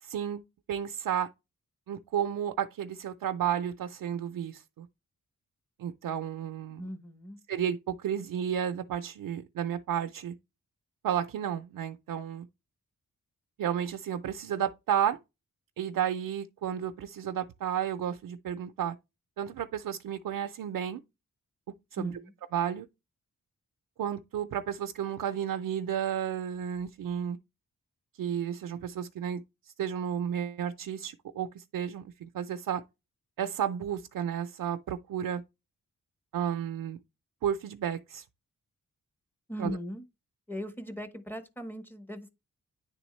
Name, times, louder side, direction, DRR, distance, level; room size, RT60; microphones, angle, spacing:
voice 1, 0.0-1.3 1.9-4.9 5.8-6.9 7.5-10.4 11.0-12.5 13.6-15.2 15.8-19.0 19.4-21.0 21.9-22.2 22.5-22.9 24.0-27.4 28.2-32.8 33.4-35.4 36.3-37.0 37.4-38.2 39.6-39.8, right 9 dB, 85° right, 0.5 m, -32 dB
voice 2, 6.8-7.4 22.0-22.3 39.5-40.0 40.5-42.3, equal, 5° left, 0.9 m, -39 dB
10.0 x 3.5 x 3.1 m
wide cardioid pair, 125°, 32 cm